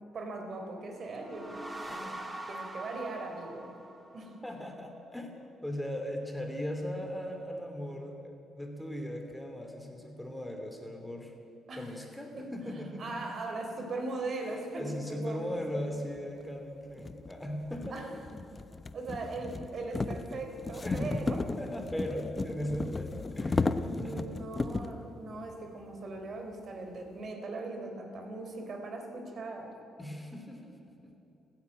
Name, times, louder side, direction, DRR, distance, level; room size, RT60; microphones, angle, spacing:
voice 1, 0.1-3.7 4.1-4.3 11.7-11.9 12.4-15.8 17.9-18.1 18.4-18.5 18.9-21.6 23.7-29.7, right 2 dB, 50° right, 4 dB, 3.9 m, -40 dB
sound 1, 1.0-4.5, right 1 dB, 20° right, 2.5 m, -43 dB
voice 2, 4.4-11.3 11.8-13.2 14.4-18.0 20.8-21.2 21.6-24.4 30.0-30.8 31.0-31.1, equal, 5° left, 3 dB, 3.0 m, -38 dB
sound 2, 16.2-16.3 17.0-25.0, left 3 dB, 25° left, 0.9 m, -34 dB
30.0 x 10.5 x 9.0 m, 3.0 s
cardioid pair, 90°, 0 cm